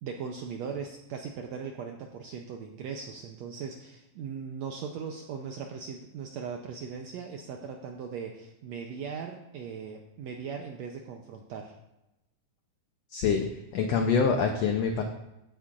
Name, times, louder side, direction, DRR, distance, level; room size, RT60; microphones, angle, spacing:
voice 1, 0.0-11.7, right 6 dB, 80° right, 3 dB, 1.5 m, -39 dB
voice 2, 13.1-13.5 13.7-15.0, left 5 dB, 85° left, 4 dB, 1.4 m, -25 dB
15.5 x 8.3 x 2.5 m, 0.92 s
omnidirectional pair, 3.9 m